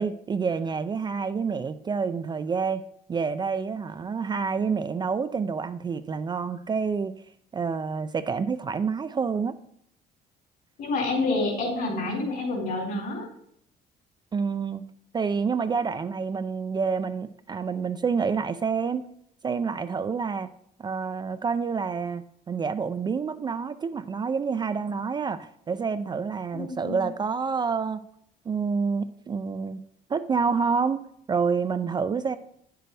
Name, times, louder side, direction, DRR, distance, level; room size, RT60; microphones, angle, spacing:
voice 1, 0.0-2.8 3.1-7.1 7.5-9.6 14.3-14.8 15.1-19.1 19.4-20.5 20.8-28.0 28.5-29.8 30.1-31.0 31.3-32.4, right 5 dB, 25° right, 0.3 m, -28 dB
voice 2, 10.8-13.3 26.5-27.0, left 2 dB, 65° left, 3.8 m, -28 dB
8.9 x 6.8 x 3.3 m
cardioid pair, 110°, 17 cm